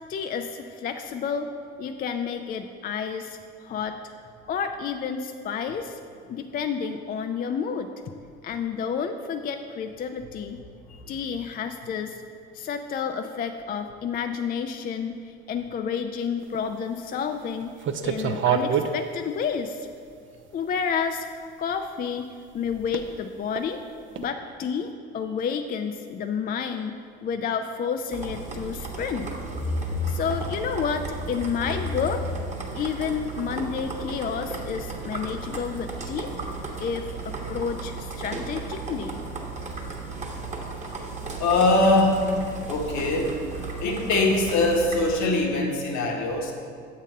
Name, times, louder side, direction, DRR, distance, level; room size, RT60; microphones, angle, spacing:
voice 1, 0.1-1.5 1.8-4.0 4.5-6.0 6.3-7.9 8.4-10.6 11.1-12.2 12.5-17.7 18.0-19.9 20.5-21.3 21.6-22.3 22.5-23.8 24.2-29.3 30.1-32.2 32.7-36.3 36.8-39.2, left 6 dB, 30° left, 6 dB, 0.4 m, -30 dB
sound 1, 16.4-16.6 17.1-17.4 17.8-18.9 19.6-19.7 20.7-20.8 22.9-23.1 23.5-23.6 24.2-24.3, right 7 dB, 35° right, 0.5 m, -25 dB
sound 2, 28.1-45.2, right 2 dB, 20° right, 1.2 m, -34 dB
voice 2, 41.4-42.3 42.7-43.3 43.8-46.5, left 2 dB, 60° left, 1 dB, 1.3 m, -22 dB
7.0 x 4.2 x 5.2 m, 2.2 s
hypercardioid pair, 65°, 33 cm